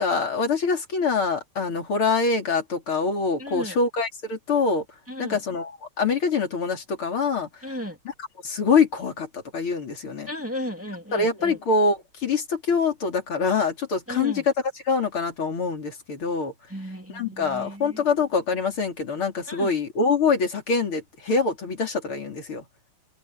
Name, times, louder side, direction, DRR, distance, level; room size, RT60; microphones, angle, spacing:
voice 1, 0.0-4.8 5.2-7.5 8.0-8.1 8.4-10.3 11.1-16.5 17.1-22.6, left 4 dB, 80° left, 4.3 m, -24 dB
voice 2, 3.4-3.8 5.1-5.4 7.6-8.0 10.3-11.6 14.1-14.4 16.7-18.0 19.5-19.7, equal, 5° right, 2.7 m, -35 dB
omnidirectional pair, 2.3 m